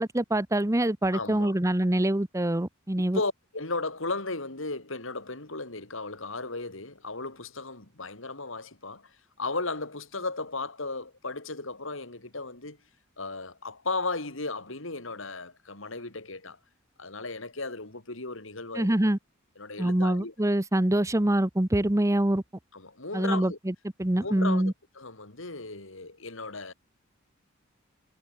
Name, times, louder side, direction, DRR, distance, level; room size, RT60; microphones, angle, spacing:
voice 1, 0.0-3.2 18.7-19.2 19.8-22.4 23.1-24.7, right 1 dB, 15° right, 0.9 m, -25 dB
voice 2, 1.1-1.5 3.0-12.8 13.2-16.6 17.0-18.9 19.6-20.3 22.7-23.6 24.2-26.7, left 3 dB, 70° left, 3.6 m, -35 dB
head